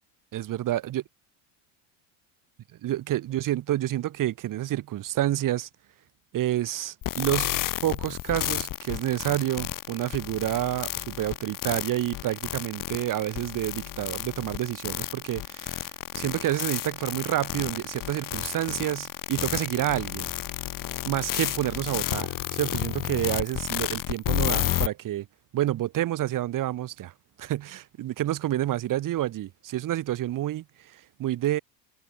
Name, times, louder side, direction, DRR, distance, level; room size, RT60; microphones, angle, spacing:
voice 1, 0.3-1.0 2.8-5.7 6.3-7.5 7.8-15.9 16.2-20.3 21.0-25.3 25.5-27.1 27.4-31.6, right 13 dB, 40° right, 4.7 m, -29 dB
sound 1, 7.0-24.9, left 13 dB, 40° left, 7.1 m, -31 dB
cardioid pair, 150°, 49 cm